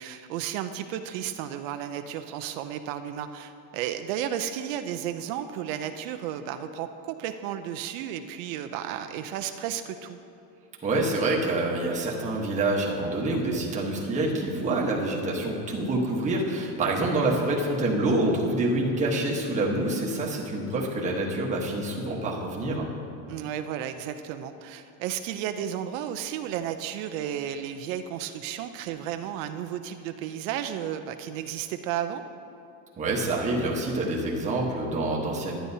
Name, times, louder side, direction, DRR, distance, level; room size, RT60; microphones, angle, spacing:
voice 1, 0.0-10.2 17.2-17.5 23.3-32.2, right 10 dB, 80° right, 8 dB, 0.6 m, -33 dB
voice 2, 10.8-22.9 33.0-35.6, right 2 dB, 20° right, -3 dB, 1.1 m, -27 dB
11.5 x 10.0 x 2.7 m, 2.5 s
cardioid pair, 155°, 38 cm